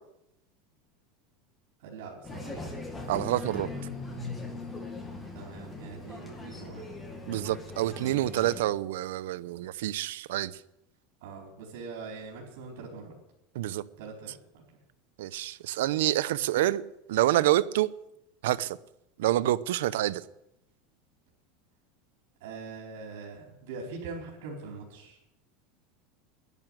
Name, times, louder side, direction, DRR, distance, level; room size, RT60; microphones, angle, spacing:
voice 1, 1.8-2.8 5.3-6.9 11.2-13.1 14.0-14.6 22.4-25.2, right 4 dB, 70° right, 4.3 m, -42 dB
sound 1, 2.2-8.6, left 3 dB, 10° left, 1.8 m, -40 dB
voice 2, 3.1-3.7 7.3-10.5 13.5-13.8 15.2-16.8 17.1-17.9 18.4-18.8 19.2-20.2, right 14 dB, 90° right, 0.7 m, -27 dB
11.0 x 11.0 x 9.1 m
supercardioid pair, 165°, 0 cm